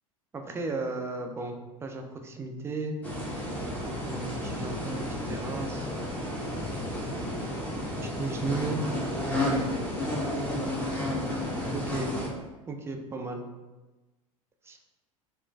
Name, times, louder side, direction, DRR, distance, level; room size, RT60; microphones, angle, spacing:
voice 1, 0.3-3.0 4.0-5.9 8.0-8.8 11.7-12.1 12.7-13.4 14.7-14.8, right 3 dB, 15° right, 3 dB, 0.3 m, -35 dB
sound 1, 3.0-12.3, left 1 dB, 10° left, 0.7 m, -32 dB
3.0 x 2.4 x 2.2 m, 1.1 s
figure-of-eight pair, 75°, 18 cm